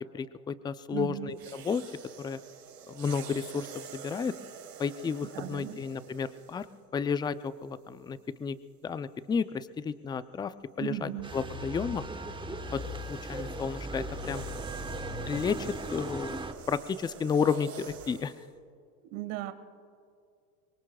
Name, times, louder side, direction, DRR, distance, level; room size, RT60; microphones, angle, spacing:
voice 1, 0.1-1.8 2.2-2.4 2.9-4.3 4.8-6.7 6.9-8.6 8.8-12.0 12.7-12.8 13.1-14.4 15.3-16.4 16.7-18.3, left 6 dB, 10° left, 14 dB, 0.3 m, -32 dB
voice 2, 0.9-1.3 5.3-5.8 10.8-11.3 19.0-19.5, right 15 dB, 60° right, 10 dB, 1.6 m, -36 dB
sound 1, 1.3-6.8 7.6-7.9 11.8-18.5, right 8 dB, 85° right, 3.4 m, -48 dB
sound 2, 11.2-17.4, left 4 dB, 60° left, 2.9 m, -44 dB
sound 3, 11.2-16.5, right 3 dB, 10° right, 1.1 m, -39 dB
25.5 x 22.5 x 2.3 m, 2.3 s
hypercardioid pair, 90°, 48 cm